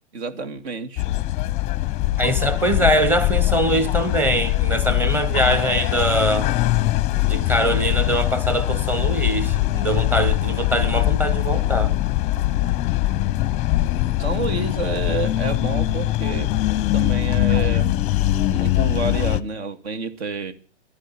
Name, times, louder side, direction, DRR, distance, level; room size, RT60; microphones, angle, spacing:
voice 1, 0.1-1.0 14.2-16.5 16.9-18.0 18.5-20.5, right 4 dB, 70° right, 2.4 m, -29 dB
sound 1, 1.0-19.4, left 15 dB, 20° left, 0.7 m, -22 dB
voice 2, 2.2-6.5 7.3-11.9, right 1 dB, 5° right, 0.9 m, -22 dB
12.5 x 10.0 x 10.0 m
hypercardioid pair, 145°, 34 cm